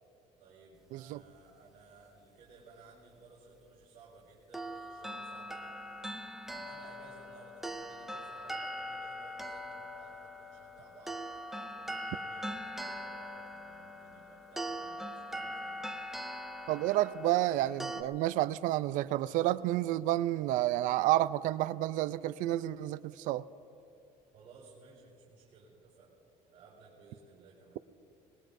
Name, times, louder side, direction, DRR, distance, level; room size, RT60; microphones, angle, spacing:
voice 1, 0.4-5.7 6.4-11.2 11.7-16.0 24.3-26.1 26.5-27.8, right 4 dB, 50° right, -8 dB, 4.3 m, -57 dB
sound 1, 4.5-18.0, equal, ahead, 0.6 m, -41 dB
voice 2, 16.7-23.4, right 15 dB, 70° right, 16 dB, 0.4 m, -30 dB
26.5 x 20.0 x 2.7 m, 2.9 s
cardioid pair, 165°, 14 cm